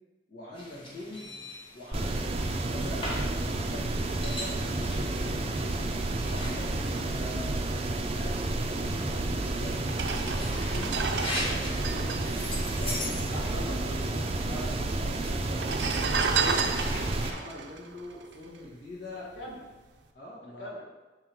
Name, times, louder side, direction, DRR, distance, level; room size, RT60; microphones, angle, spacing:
voice 1, 0.3-1.3 1.7-2.3 2.6-5.8 6.2-9.9 10.2-12.4 12.8-13.7 15.0-16.7 17.2-19.5 20.1-20.7, left 1 dB, 70° left, -9 dB, 1.5 m, -43 dB
sound 1, 0.5-17.3, left 1 dB, 30° left, 1.3 m, -42 dB
sound 2, 1.9-17.3, right 2 dB, 35° right, 0.5 m, -31 dB
sound 3, 9.9-13.5 13.8-13.9 14.0-14.7 15.4-18.9 19.4-19.6, right 5 dB, 80° right, 0.6 m, -32 dB
voice 2, 13.3-15.0 19.3-19.6 20.3-20.8, equal, 85° left, -2 dB, 1.5 m, -42 dB
6.6 x 3.8 x 4.4 m, 1.2 s
head